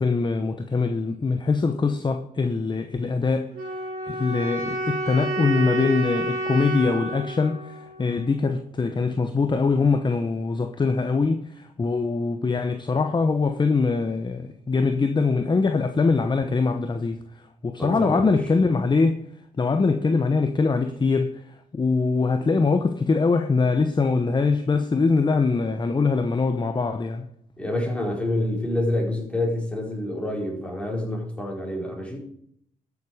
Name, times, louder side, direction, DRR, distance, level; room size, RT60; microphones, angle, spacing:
voice 1, 0.0-3.5 4.1-17.2 17.6-19.2 19.6-21.4 21.7-27.3, left 4 dB, 30° left, 0.9 m, -23 dB
sound 1, 3.5-8.6, right 1 dB, 90° right, 4.7 m, -30 dB
voice 2, 17.8-18.4 27.6-32.2, left 1 dB, 5° left, 4.6 m, -27 dB
13.0 x 7.1 x 5.0 m
supercardioid pair, 65°, 15 cm